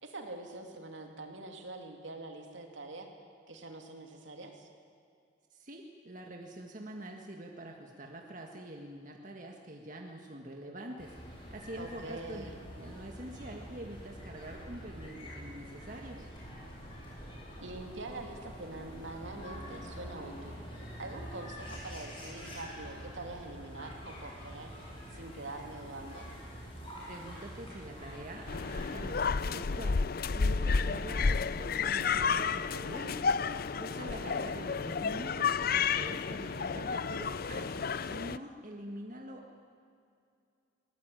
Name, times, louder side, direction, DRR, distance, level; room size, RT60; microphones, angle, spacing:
voice 1, 0.0-3.1 3.5-4.7 11.8-12.6 17.6-20.6 21.0-24.7 25.1-26.3 34.2-34.4, right 2 dB, 70° right, 3 dB, 2.9 m, -44 dB
voice 2, 5.5-12.5 12.7-16.3 27.1-39.6, right 1 dB, 40° right, 1 dB, 1.8 m, -45 dB
sound 1, 11.0-28.9, equal, 25° left, 7.6 m, -46 dB
sound 2, 28.5-38.4, left 5 dB, 50° left, 0.5 m, -31 dB
23.0 x 19.5 x 9.1 m, 2.5 s
head